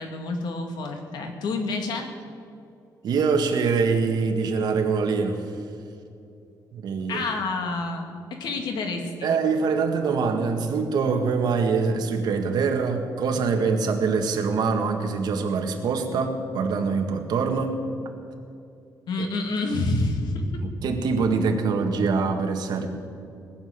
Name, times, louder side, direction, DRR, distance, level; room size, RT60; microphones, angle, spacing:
voice 1, 0.0-2.1 7.1-8.1 8.4-9.3 19.1-20.4, left 3 dB, 85° left, 4 dB, 2.3 m, -28 dB
voice 2, 3.0-5.5 6.7-7.2 9.2-17.8 19.2-19.3 20.6-22.9, right 5 dB, 75° right, 4 dB, 1.8 m, -24 dB
19.5 x 7.2 x 9.6 m, 2.6 s
wide cardioid pair, 150°, 7 cm